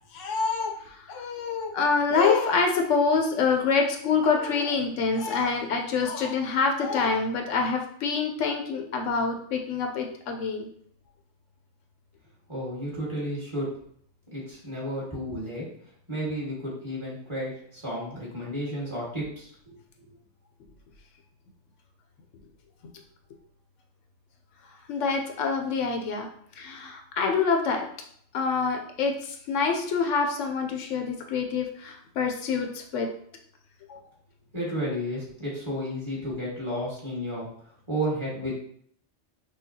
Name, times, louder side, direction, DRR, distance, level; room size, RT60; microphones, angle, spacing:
voice 1, 0.1-10.7 24.9-26.3 26.6-27.8 28.3-33.1 33.9-34.0, left 5 dB, 80° left, 3 dB, 0.9 m, -26 dB
voice 2, 12.5-13.7 14.3-15.7 16.1-19.8 34.5-37.5 37.9-38.5, equal, 25° right, -7 dB, 1.6 m, -32 dB
5.6 x 2.2 x 2.7 m, 0.63 s
omnidirectional pair, 1.3 m